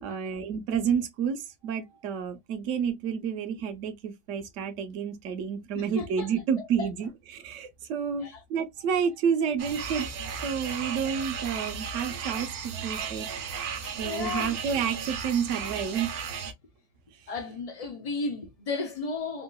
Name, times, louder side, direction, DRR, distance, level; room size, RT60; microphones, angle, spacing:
voice 1, 0.0-10.1 10.4-13.3 14.0-16.1, right 7 dB, 60° right, 1.0 m, -30 dB
voice 2, 5.7-6.3 6.8-6.9 8.2-8.4 13.8-14.6 17.3-19.4, left 3 dB, 60° left, 0.4 m, -34 dB
sound 1, 9.6-16.5, right 6 dB, 80° right, 1.2 m, -35 dB
3.6 x 2.3 x 2.2 m
omnidirectional pair, 1.5 m